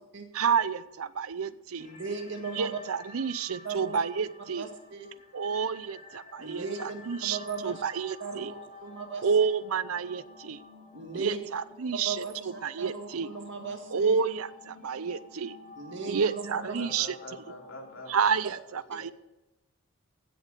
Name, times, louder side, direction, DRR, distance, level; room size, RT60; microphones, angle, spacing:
voice 1, 0.3-1.9 2.5-4.6 5.3-7.4 7.6-8.5 9.2-10.6 11.2-12.2 12.6-13.3 13.9-15.6 16.1-17.1 18.1-19.1, right 6 dB, 85° right, 16 dB, 0.6 m, -29 dB
sound 1, 1.8-18.4, left 3 dB, 40° left, 3.1 m, -51 dB
voice 2, 1.8-2.7 3.6-4.0 4.6-5.1 6.4-7.8 8.2-9.3 10.9-11.5 12.0-14.2 15.8-16.8, right 4 dB, 55° right, 4 dB, 1.9 m, -37 dB
voice 3, 16.5-19.1, left 1 dB, 70° left, 0 dB, 3.2 m, -46 dB
16.0 x 7.3 x 6.6 m, 0.98 s
head